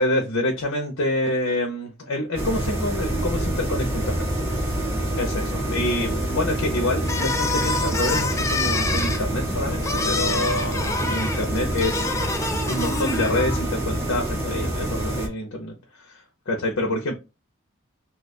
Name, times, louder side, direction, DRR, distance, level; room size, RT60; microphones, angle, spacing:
voice 1, 0.0-4.2 5.1-12.1 12.7-17.2, left 1 dB, 80° left, 0.7 m, -27 dB
sound 1, 2.4-15.3, right 1 dB, 10° right, 0.9 m, -27 dB
sound 2, 7.0-13.7, left 3 dB, 15° left, 0.3 m, -27 dB
2.8 x 2.3 x 4.1 m
head